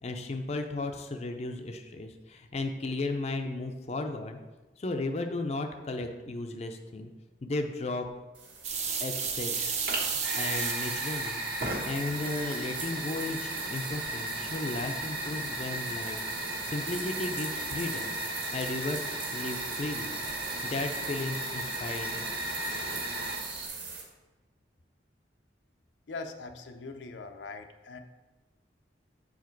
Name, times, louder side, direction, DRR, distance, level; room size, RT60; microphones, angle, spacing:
voice 1, 0.0-4.4 4.8-7.1 7.4-8.1 9.0-11.4 11.8-16.2 16.6-18.1 18.5-20.1 20.6-22.2, left 2 dB, 35° left, 4 dB, 0.5 m, -35 dB
sound 1, 8.3-24.0, right 4 dB, 75° right, 1.8 m, -42 dB
sound 2, 8.6-11.4, right 6 dB, 40° right, 0.7 m, -32 dB
Fire, 9.8-23.7, right 1 dB, 55° right, 1.2 m, -35 dB
voice 2, 26.1-28.0, left 3 dB, 80° left, 6 dB, 0.6 m, -41 dB
7.6 x 4.8 x 4.5 m, 1.2 s
head